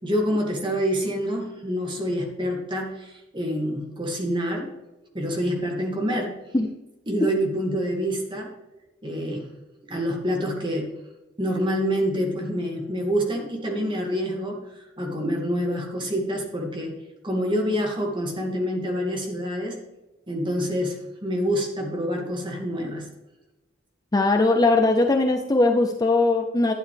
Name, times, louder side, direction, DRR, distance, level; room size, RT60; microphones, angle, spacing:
voice 1, 0.0-4.7 5.1-6.4 7.1-8.5 9.0-9.5 9.9-10.9 11.4-19.8 20.3-23.1, equal, 25° right, 0 dB, 2.1 m, -27 dB
voice 2, 24.1-26.7, left 2 dB, 20° left, 4 dB, 0.5 m, -20 dB
12.0 x 8.7 x 3.4 m, 1.0 s
head